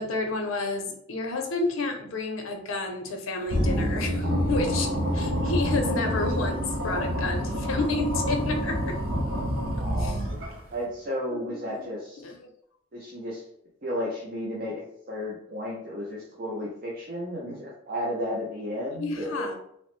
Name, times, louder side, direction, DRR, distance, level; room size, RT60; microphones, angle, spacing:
voice 1, 0.0-6.6 6.8-9.0 10.0-10.2 11.3-11.9 12.2-12.3 18.9-19.5, left 3 dB, 80° left, 4 dB, 0.5 m, -30 dB
sound 1, 3.5-10.7, equal, 90° right, 0.7 m, -27 dB
voice 2, 9.8-10.4 10.7-12.2 12.9-13.4 13.8-14.8 15.1-19.5, equal, 45° right, -5 dB, 0.5 m, -33 dB
3.0 x 2.0 x 3.0 m, 0.71 s
head